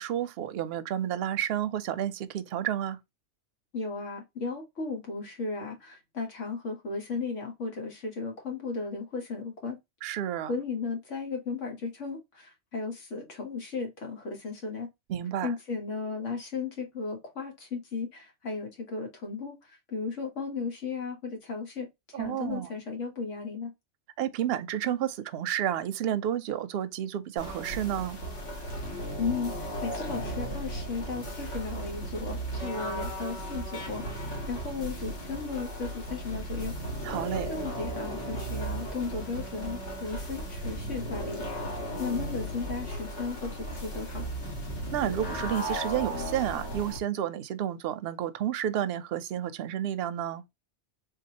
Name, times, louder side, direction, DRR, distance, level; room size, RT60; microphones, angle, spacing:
voice 1, 0.0-3.0 10.0-10.5 15.1-15.5 22.1-22.7 24.2-28.2 37.0-37.5 44.9-50.4, right 10 dB, 65° right, 0.7 m, -31 dB
voice 2, 3.7-9.8 10.5-14.9 15.4-23.7 29.2-36.8 37.5-41.4 42.0-44.3, left 4 dB, 90° left, 1.7 m, -35 dB
sound 1, 27.4-47.0, right 1 dB, 75° left, 1.7 m, -36 dB
3.7 x 2.9 x 2.8 m
omnidirectional pair, 1.2 m